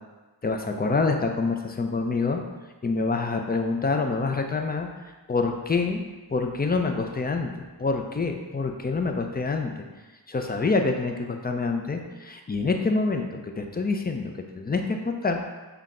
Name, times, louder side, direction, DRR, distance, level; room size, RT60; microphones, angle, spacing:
voice 1, 0.4-2.4 2.8-4.9 5.3-6.0 6.3-7.5 7.8-9.8 10.3-13.3 13.6-15.4, left 3 dB, 25° left, 4 dB, 0.5 m, -26 dB
5.7 x 2.2 x 3.7 m, 1.2 s
cardioid pair, 50°, 41 cm